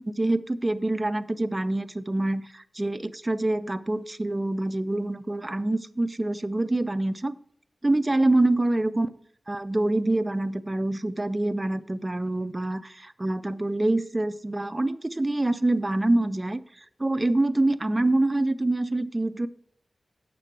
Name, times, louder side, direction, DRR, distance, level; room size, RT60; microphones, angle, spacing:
voice 1, 0.0-7.4 7.8-9.1 9.5-16.6 17.0-19.5, right 2 dB, 20° right, 13 dB, 0.4 m, -26 dB
8.1 x 6.7 x 6.0 m, 0.66 s
wide cardioid pair, 105°, 0 cm